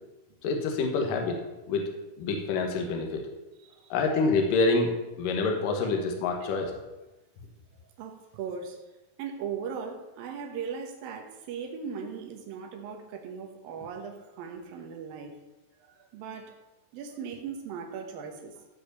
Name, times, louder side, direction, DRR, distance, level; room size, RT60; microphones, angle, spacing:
voice 1, 0.4-1.4 1.7-1.9 2.2-3.3 3.9-6.7, left 3 dB, 75° left, 3 dB, 2.9 m, -27 dB
voice 2, 3.6-4.0 8.0-8.8 9.2-15.3 15.8-16.6 16.9-18.7, right 6 dB, 85° right, 3 dB, 3.1 m, -38 dB
15.0 x 5.1 x 6.7 m, 1.0 s
omnidirectional pair, 4.0 m